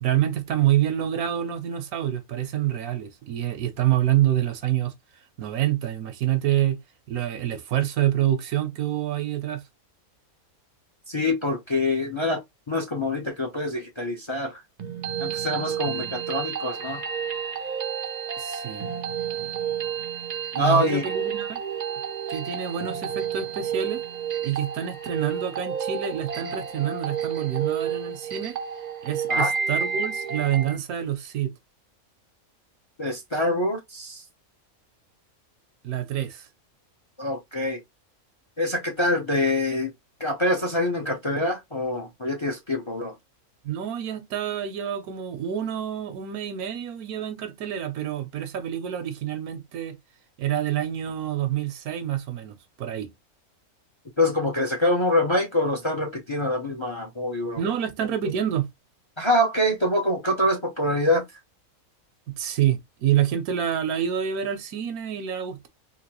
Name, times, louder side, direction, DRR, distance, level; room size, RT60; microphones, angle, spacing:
voice 1, 0.0-4.9 5.4-6.8 7.1-9.6 15.9-16.2 18.4-18.9 20.5-21.6 22.3-24.0 24.4-28.6 29.0-31.5 35.8-36.5 43.6-50.0 50.4-53.1 57.6-58.7 62.4-65.7, right 11 dB, 85° right, 1.2 m, -27 dB
voice 2, 11.1-12.4 12.7-14.6 15.2-17.0 20.6-21.0 29.3-29.5 33.0-34.2 37.2-37.8 38.6-39.9 40.2-43.1 54.2-57.6 59.2-61.2, left 1 dB, 30° left, 0.6 m, -25 dB
sound 1, 14.8-30.8, right 7 dB, 50° right, 0.5 m, -30 dB
3.8 x 2.8 x 2.9 m
omnidirectional pair, 1.5 m